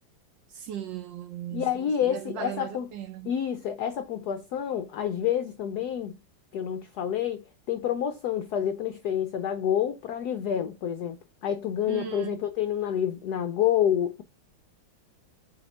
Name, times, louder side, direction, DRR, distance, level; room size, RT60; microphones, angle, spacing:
voice 1, 0.5-3.3 11.9-12.4, right 10 dB, 70° right, 1.2 m, -37 dB
voice 2, 1.5-2.9 3.2-6.2 6.5-14.2, left 9 dB, 80° left, 0.9 m, -28 dB
7.6 x 2.8 x 5.0 m
omnidirectional pair, 2.3 m